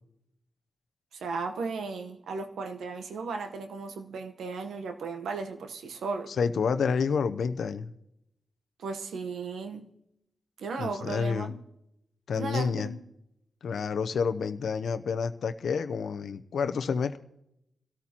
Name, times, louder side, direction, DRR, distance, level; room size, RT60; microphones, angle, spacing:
voice 1, 1.1-6.3 8.8-9.9 10.6-11.6 12.4-13.0, right 4 dB, 80° right, 6 dB, 1.0 m, -35 dB
voice 2, 6.4-7.9 10.8-11.6 12.3-12.9 13.6-17.2, left 5 dB, 75° left, 11 dB, 0.6 m, -29 dB
24.0 x 13.5 x 2.9 m, 0.81 s
supercardioid pair, 50°, 0 cm